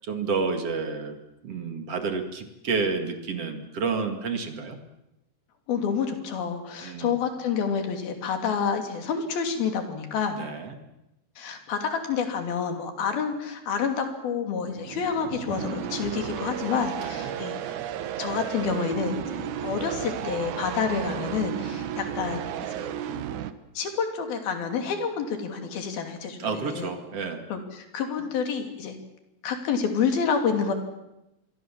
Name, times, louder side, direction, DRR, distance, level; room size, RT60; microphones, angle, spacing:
voice 1, 0.1-1.1 1.4-4.8 6.8-7.1 10.4-10.7 17.0-17.3 21.2-21.8 26.4-27.4, right 5 dB, 45° right, 6 dB, 2.8 m, -30 dB
voice 2, 5.7-10.4 11.4-17.8 18.2-22.5 22.7-22.9 23.8-26.9 27.5-29.0 29.4-30.7, left 6 dB, 75° left, 5 dB, 4.6 m, -28 dB
sound 1, 14.5-23.5, right 9 dB, 65° right, 2.2 m, -33 dB
26.5 x 22.5 x 7.4 m, 0.89 s
omnidirectional pair, 4.3 m